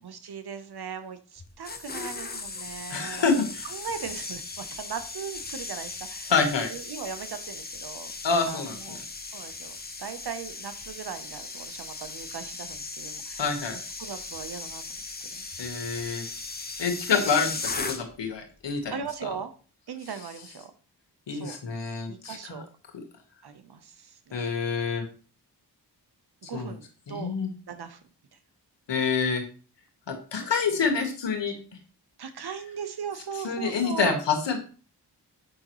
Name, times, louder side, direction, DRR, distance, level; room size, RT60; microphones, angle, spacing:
voice 1, 0.0-6.3 6.7-8.1 8.5-9.0 9.3-13.6 14.0-15.0 15.3-16.0 16.8-17.3 18.9-19.5 19.9-20.7 21.3-21.6 22.1-22.7 23.4-24.6 26.5-27.4 27.7-28.0 28.3-28.4 29.2-29.3 30.3-30.5 32.2-34.2, right 7 dB, 60° right, 10 dB, 0.9 m, -39 dB
sound 1, 1.4-18.3 18.6-18.9, left 3 dB, 20° left, 0.8 m, -38 dB
voice 2, 2.9-3.7 6.3-6.7 8.2-9.0 13.4-13.7 15.6-16.2 16.8-18.9 19.2-19.3 21.3-22.6 24.3-25.0 26.5-26.7 27.1-27.5 28.9-29.4 30.1-31.5 33.4-34.6, left 5 dB, 80° left, 5 dB, 1.4 m, -27 dB
6.4 x 5.1 x 3.0 m, 0.39 s
cardioid pair, 50°, 42 cm